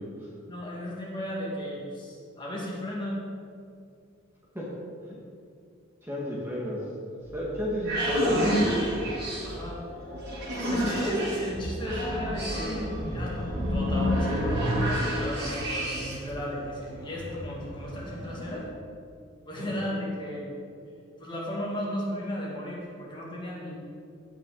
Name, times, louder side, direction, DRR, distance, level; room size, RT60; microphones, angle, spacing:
voice 1, 0.4-3.2 9.4-9.8 10.7-12.8 13.1-18.7 19.5-20.5 21.2-23.7, left 1 dB, 25° left, -4 dB, 2.0 m, -35 dB
voice 2, 6.0-6.8 7.1-8.7 19.6-19.8, equal, 10° right, -5 dB, 1.4 m, -33 dB
sound 1, 7.2-16.3, equal, 55° right, 2.5 m, -29 dB
sound 2, 11.5-18.6, equal, 65° left, 2.2 m, -38 dB
15.5 x 5.9 x 3.8 m, 2.4 s
head